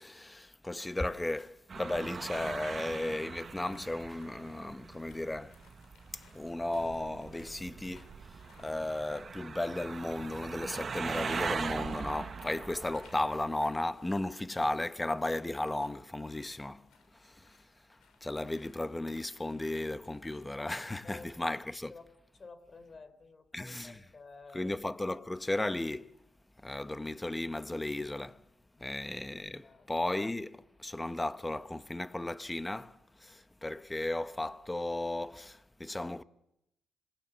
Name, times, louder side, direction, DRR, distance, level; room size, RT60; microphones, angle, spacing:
voice 1, 0.0-5.5 6.3-8.1 8.6-16.8 17.2-17.6 18.2-21.9 23.5-24.0 24.5-26.1 26.6-28.4 28.8-33.0 33.2-36.2, left 1 dB, 10° left, 0.9 m, -35 dB
sound 1, 1.7-13.5, right 5 dB, 40° right, 0.9 m, -41 dB
sound 2, 3.2-21.1, left 5 dB, 75° left, 6.0 m, -64 dB
sound 3, 6.7-8.9, right 6 dB, 60° right, 1.8 m, -54 dB
voice 2, 21.0-21.5 21.9-22.1 22.3-24.8 28.8-28.9 29.6-29.9, left 3 dB, 35° left, 3.3 m, -52 dB
26.5 x 20.0 x 7.1 m
cardioid pair, 90°, 0 cm